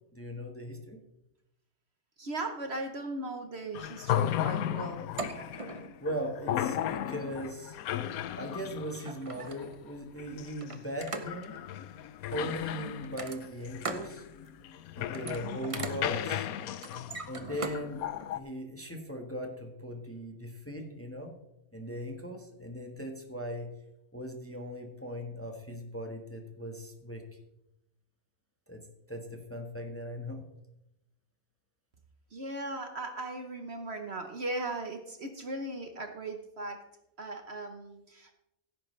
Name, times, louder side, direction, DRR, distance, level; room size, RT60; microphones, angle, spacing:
voice 1, 0.1-1.0 6.0-7.8 8.3-11.6 12.3-14.2 15.0-16.5 17.3-18.0 18.3-21.3 21.7-23.7 24.1-27.2 28.7-28.8 29.1-30.4, equal, 10° left, 3 dB, 1.2 m, -39 dB
voice 2, 2.2-5.0 32.3-36.8 37.2-38.3, right 2 dB, 50° right, 5 dB, 1.1 m, -38 dB
sound 1, 3.7-18.4, left 11 dB, 75° left, 1.0 m, -35 dB
sound 2, 5.0-6.0 7.1-7.3 8.5-8.6 8.9-9.9 10.6-11.6 13.0-14.1 14.5-14.8 15.0-17.8 18.2-18.3, right 3 dB, 30° right, 0.8 m, -40 dB
16.0 x 9.1 x 3.2 m, 0.88 s
omnidirectional pair, 1.5 m